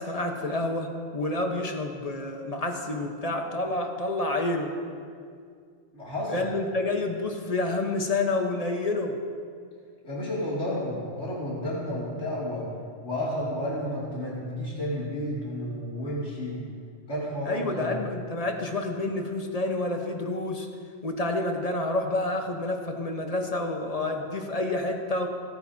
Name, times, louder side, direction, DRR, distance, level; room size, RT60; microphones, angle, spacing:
voice 1, 0.0-4.7 6.3-9.2 17.5-20.7 21.0-25.3, left 2 dB, 35° left, 3 dB, 1.2 m, -29 dB
voice 2, 5.9-6.4 10.0-12.6 13.0-16.6 17.1-18.1, left 1 dB, 80° left, -7 dB, 3.0 m, -31 dB
28.0 x 9.6 x 2.8 m, 2.2 s
omnidirectional pair, 1.2 m